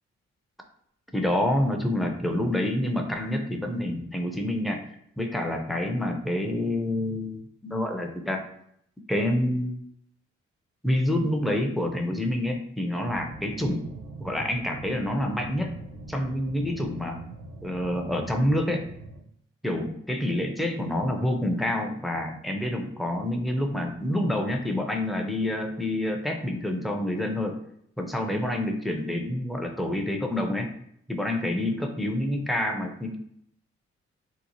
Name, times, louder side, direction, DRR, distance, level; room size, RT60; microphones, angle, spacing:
voice 1, 1.1-4.9 5.2-8.4 9.1-9.8 10.8-13.8 14.2-15.8 16.1-17.2 17.6-18.9 19.6-27.6 28.0-30.7 31.1-33.2, left 1 dB, ahead, 3 dB, 0.5 m, -27 dB
sound 1, 13.0-19.2, right 2 dB, 75° right, 0.5 m, -42 dB
2.9 x 2.0 x 2.7 m, 0.71 s
supercardioid pair, 40°, 30 cm